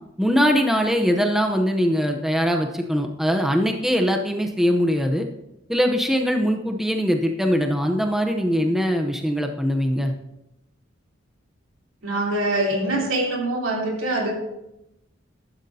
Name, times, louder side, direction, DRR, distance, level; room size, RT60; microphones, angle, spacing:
voice 1, 0.2-5.3 5.7-10.1, equal, ahead, 3 dB, 0.7 m, -21 dB
voice 2, 12.0-14.3, right 1 dB, 85° right, -2 dB, 3.2 m, -24 dB
14.5 x 11.5 x 2.8 m, 0.87 s
head